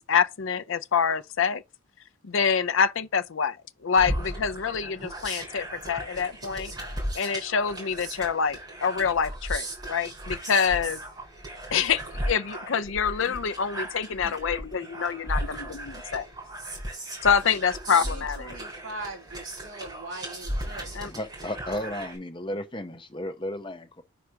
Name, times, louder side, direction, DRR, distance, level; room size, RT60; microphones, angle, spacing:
voice 1, 0.0-1.6 2.2-3.6 3.8-6.7 7.1-11.0 11.7-16.3 17.2-18.6 20.9-21.1, left 6 dB, 70° left, 0.5 m, -26 dB
sound 1, 4.0-22.2, right 1 dB, 20° right, 3.8 m, -36 dB
voice 2, 17.9-20.9, right 2 dB, 70° right, 2.7 m, -41 dB
voice 3, 21.0-24.0, left 1 dB, 25° left, 0.8 m, -34 dB
4.8 x 4.7 x 5.7 m
head